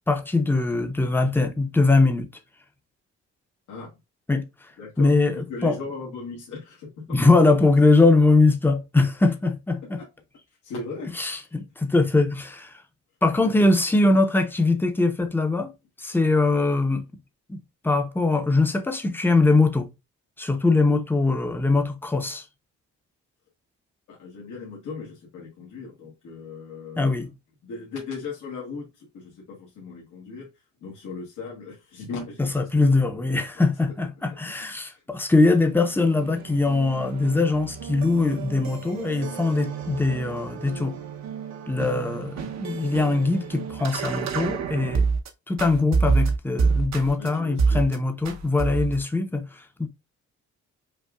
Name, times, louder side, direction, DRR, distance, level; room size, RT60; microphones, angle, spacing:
voice 1, 0.1-2.3 4.3-4.5 5.0-5.8 7.1-10.0 11.2-12.8 13.2-15.7 16.0-17.1 17.5-17.6 17.8-19.9 20.4-22.4 27.0-27.3 32.4-41.0 41.7-45.1 45.5-49.9, left 3 dB, 5° left, 0.7 m, -22 dB
voice 2, 4.8-7.0 10.0-10.1 10.6-11.1 13.4-13.8 24.1-27.2 27.6-30.5 30.8-32.7 33.0-33.6 47.2-47.9, left 4 dB, 75° left, 1.4 m, -38 dB
sound 1, 35.5-45.3 45.6-47.3 47.6-48.0 48.2-49.0, right 5 dB, 60° right, 0.8 m, -28 dB
5.4 x 2.4 x 2.3 m
cardioid pair, 90°, 30 cm